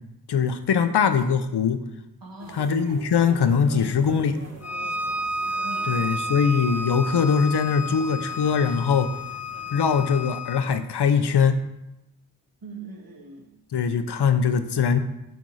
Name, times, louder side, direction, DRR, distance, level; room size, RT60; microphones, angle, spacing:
voice 1, 0.3-1.8 2.5-4.4 5.9-9.1 9.7-11.6 13.7-15.0, left 6 dB, 75° left, 9 dB, 0.8 m, -22 dB
voice 2, 2.2-2.7 5.6-6.5 12.6-13.5, right 2 dB, 55° right, 1 dB, 1.8 m, -42 dB
sound 1, 2.4-10.2, right 2 dB, 40° right, 1.7 m, -46 dB
Bowed string instrument, 4.6-10.7, equal, 40° left, 1.2 m, -31 dB
9.2 x 3.6 x 6.3 m, 0.89 s
cardioid pair, 45°, 40 cm